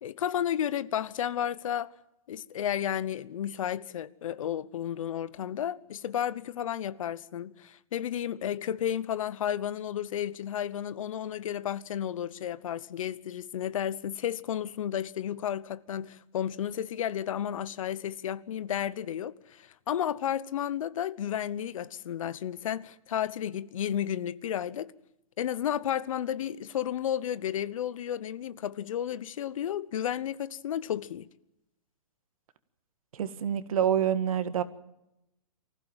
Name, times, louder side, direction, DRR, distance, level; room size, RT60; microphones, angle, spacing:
voice 1, 0.0-1.9 2.3-24.9 25.4-31.3, left 10 dB, 60° left, 1.0 m, -32 dB
voice 2, 33.1-34.6, right 9 dB, 65° right, 1.8 m, -27 dB
24.5 x 15.5 x 9.0 m
hypercardioid pair, 150°, 19 cm